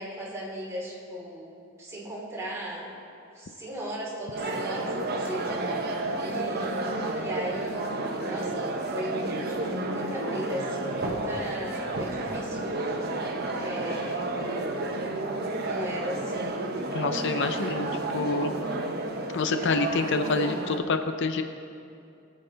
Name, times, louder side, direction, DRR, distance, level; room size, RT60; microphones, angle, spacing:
voice 1, 0.0-2.9 3.3-5.5 6.2-7.9 8.2-9.5 9.8-12.7 13.6-14.3 15.6-16.6, equal, 15° right, -5 dB, 2.8 m, -37 dB
sound 1, 4.3-20.8, right 2 dB, 50° right, 1.1 m, -31 dB
voice 2, 16.9-17.9 18.1-18.5 19.3-21.4, left 4 dB, 60° left, 8 dB, 0.5 m, -27 dB
21.0 x 7.7 x 4.0 m, 2.6 s
head